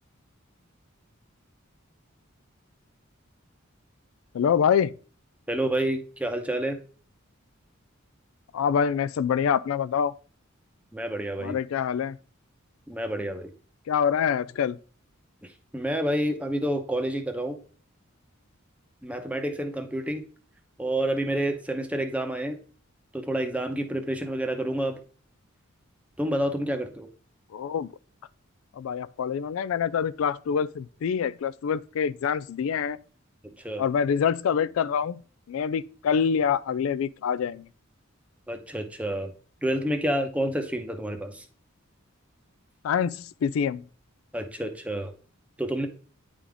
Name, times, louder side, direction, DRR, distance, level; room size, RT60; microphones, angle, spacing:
voice 1, 4.3-4.9 8.5-10.1 11.4-12.2 13.9-14.8 27.5-27.9 28.8-33.0 33.8-35.2 35.5-37.7 42.8-43.8, left 7 dB, 75° left, 0.3 m, -25 dB
voice 2, 5.5-6.8 10.9-11.6 12.9-13.5 15.7-17.6 19.0-20.2 20.8-22.6 23.1-25.0 26.2-27.1 33.6-33.8 38.5-39.3 39.6-41.4 44.3-45.1 45.6-45.9, right 1 dB, 5° right, 0.8 m, -29 dB
9.7 x 3.7 x 3.5 m
head